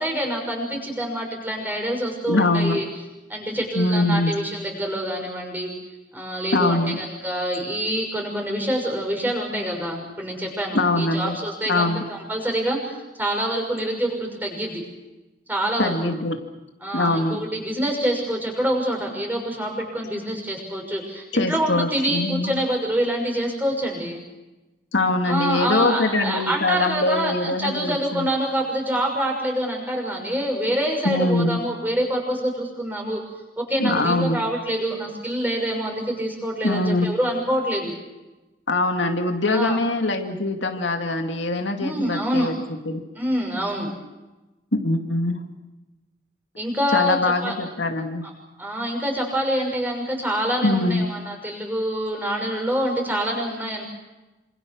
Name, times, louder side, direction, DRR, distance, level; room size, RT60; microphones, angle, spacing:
voice 1, 0.0-2.8 3.3-5.7 6.1-14.8 15.5-15.9 16.8-24.2 25.2-33.2 33.6-37.9 39.5-39.8 41.8-42.5 43.1-43.9 46.6-47.6 48.6-53.8, equal, 10° right, 1 dB, 6.3 m, -26 dB
voice 2, 2.3-2.8 3.8-4.3 6.5-7.0 10.7-11.4 11.7-12.0 15.8-16.4 16.9-17.4 21.3-22.6 24.9-28.3 31.0-31.6 33.8-34.4 36.6-37.1 38.7-42.6 42.9-43.0 44.7-45.4 46.9-48.2 50.6-51.1, left 2 dB, 80° left, 5 dB, 2.3 m, -23 dB
27.0 x 27.0 x 6.3 m, 1.1 s
head